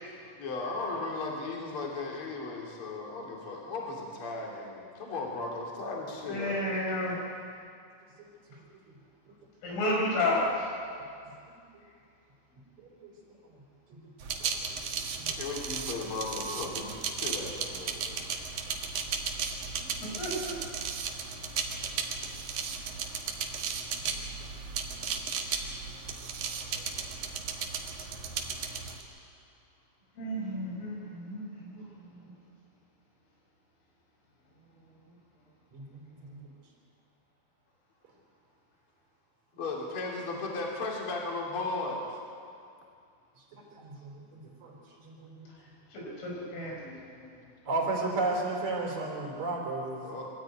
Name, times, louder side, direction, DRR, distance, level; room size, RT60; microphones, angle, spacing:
voice 1, 0.2-6.6 15.4-18.2 39.5-42.1 50.0-50.3, left 3 dB, 30° left, -1 dB, 3.3 m, -36 dB
voice 2, 6.3-7.2 9.6-10.5 20.2-20.5 30.2-31.8 32.2-32.3 45.9-46.9, left 1 dB, 75° left, -3 dB, 7.8 m, -31 dB
voice 3, 12.8-13.1 13.9-14.0 14.4-14.5 14.8-14.9 15.2-15.4 19.8-19.9 30.9-31.1 35.7-35.8 36.2-36.5 43.5-44.2 44.6-44.8 45.0-45.5 47.7-50.1, right 2 dB, 35° right, -1 dB, 4.3 m, -34 dB
sound 1, 14.2-29.0, right 6 dB, 70° right, 1.8 m, -35 dB
23.5 x 13.5 x 9.2 m, 2.4 s
omnidirectional pair, 5.8 m